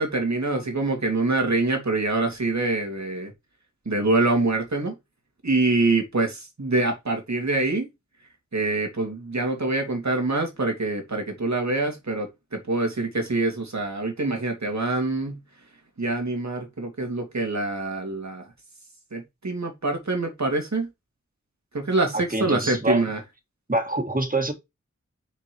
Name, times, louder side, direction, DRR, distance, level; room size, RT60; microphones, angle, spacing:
voice 1, 0.0-3.3 3.9-4.9 5.4-7.9 8.5-15.4 16.0-18.5 19.1-20.9 21.7-23.2, right 2 dB, 65° right, 2.6 m, -25 dB
voice 2, 22.1-23.1 23.7-24.5, right 2 dB, 30° right, 1.9 m, -26 dB
5.8 x 4.6 x 4.6 m
wide cardioid pair, 45°, 30 cm